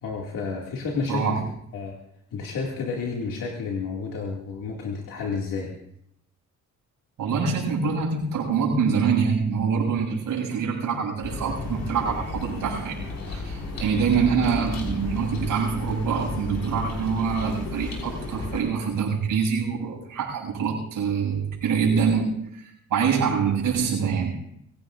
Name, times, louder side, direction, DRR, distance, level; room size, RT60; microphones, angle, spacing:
voice 1, 0.0-1.4 1.7-1.9 2.3-5.7, left 4 dB, 80° left, -2 dB, 2.4 m, -30 dB
voice 2, 1.1-1.5 7.2-13.0 13.2-24.5, right 6 dB, 80° right, -2 dB, 7.8 m, -25 dB
sound 1, 11.2-18.6, left 3 dB, 55° left, 5.2 m, -33 dB
25.5 x 17.0 x 2.6 m, 0.75 s
cardioid pair, 110°, 32 cm